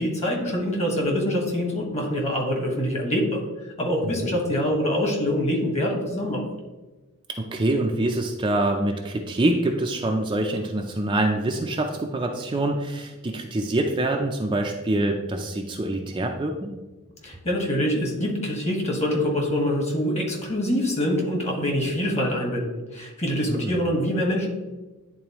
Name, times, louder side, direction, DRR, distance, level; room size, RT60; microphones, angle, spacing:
voice 1, 0.0-3.4 3.8-6.5 17.2-24.5, equal, 30° left, 0 dB, 1.5 m, -25 dB
voice 2, 7.3-16.8 23.5-23.7, right 1 dB, 20° right, 2 dB, 0.4 m, -25 dB
10.0 x 3.8 x 3.0 m, 1.1 s
head